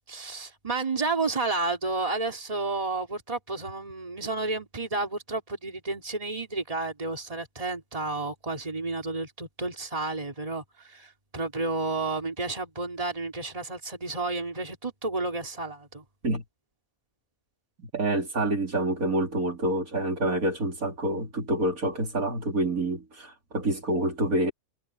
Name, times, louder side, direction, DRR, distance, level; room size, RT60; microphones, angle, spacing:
voice 1, 0.1-16.0, right 3 dB, 25° right, 3.0 m, -31 dB
voice 2, 17.8-24.5, right 1 dB, 75° right, 3.9 m, -27 dB
omnidirectional pair, 1.5 m